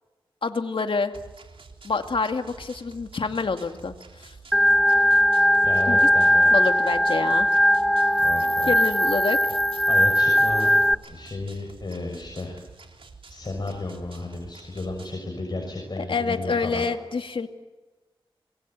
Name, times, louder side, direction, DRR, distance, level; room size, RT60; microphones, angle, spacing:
voice 1, 0.4-1.1 1.8-3.9 4.2-4.3 5.9-6.0 6.5-7.6 8.7-9.5 16.0-17.5, left 4 dB, 70° left, 6 dB, 2.3 m, -27 dB
sound 1, 1.1-15.2, right 4 dB, 75° right, 3.6 m, -48 dB
Organ, 4.5-10.9, equal, ahead, 0.8 m, -19 dB
voice 2, 5.6-6.5 8.2-8.7 9.9-10.8 11.1-12.6 13.3-16.8, left 2 dB, 50° left, 1 dB, 6.4 m, -33 dB
26.0 x 21.5 x 9.4 m, 1.2 s
cardioid pair, 55°, 9 cm